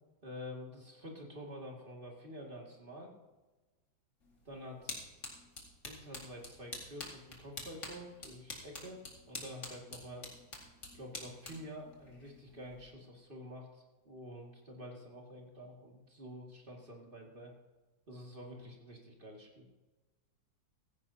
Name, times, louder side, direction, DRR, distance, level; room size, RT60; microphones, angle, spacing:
voice 1, 0.2-3.1 4.5-4.9 5.8-10.3 10.9-17.5 18.1-19.7, equal, 25° right, -1 dB, 2.4 m, -48 dB
sound 1, 4.2-12.9, left 2 dB, 40° left, 2.6 m, -48 dB
16.0 x 15.0 x 2.9 m, 1.2 s
omnidirectional pair, 2.1 m